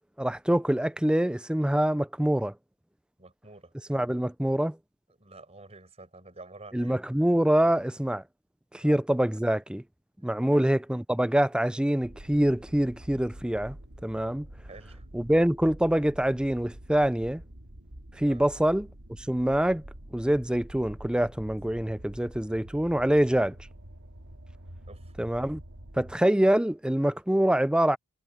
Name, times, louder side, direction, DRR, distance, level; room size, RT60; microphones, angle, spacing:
voice 1, 0.2-2.5 3.9-4.8 6.7-8.2 8.7-9.8 10.2-13.8 14.0-14.5 15.1-17.4 18.2-18.9 19.3-19.8 20.1-23.5 25.2-25.6 26.0-28.0, right 1 dB, 5° right, 0.4 m, -25 dB
voice 2, 3.2-3.7 5.2-7.0 8.8-9.0 10.5-10.7 14.7-15.1 18.3-18.5 24.9-25.1, right 2 dB, 30° right, 6.4 m, -49 dB
sound 1, 12.0-26.2, right 1 dB, 70° right, 2.1 m, -47 dB
head